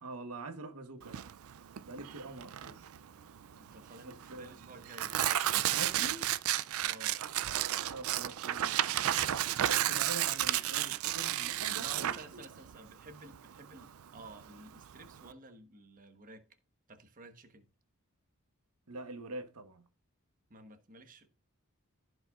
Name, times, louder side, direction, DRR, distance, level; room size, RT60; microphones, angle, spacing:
voice 1, 0.0-1.2 1.9-2.9 4.1-4.5 5.7-6.3 7.9-9.2 9.7-12.4 18.9-19.8, right 2 dB, 90° right, 1.1 m, -45 dB
Tearing, 1.0-15.3, right 12 dB, 70° right, 0.4 m, -33 dB
voice 2, 3.6-5.2 5.8-6.2 6.9-7.2 8.4-8.6 11.8-16.5 16.9-17.7 20.5-21.3, right 2 dB, 40° right, 1.1 m, -53 dB
15.0 x 5.4 x 2.4 m
head